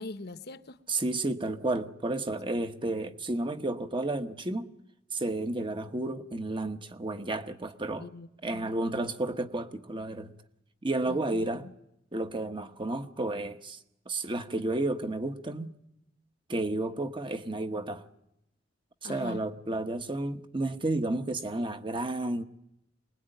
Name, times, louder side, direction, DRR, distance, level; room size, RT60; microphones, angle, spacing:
voice 1, 0.0-0.8 8.0-8.6 11.1-11.7 19.0-19.4, left 2 dB, 55° left, 1.0 m, -42 dB
voice 2, 0.9-4.7 5.1-8.1 8.4-10.3 10.8-11.7 12.1-13.8 14.1-15.7 16.5-18.0 19.0-22.4, right 2 dB, 25° right, 1.1 m, -32 dB
24.5 x 20.5 x 9.2 m
head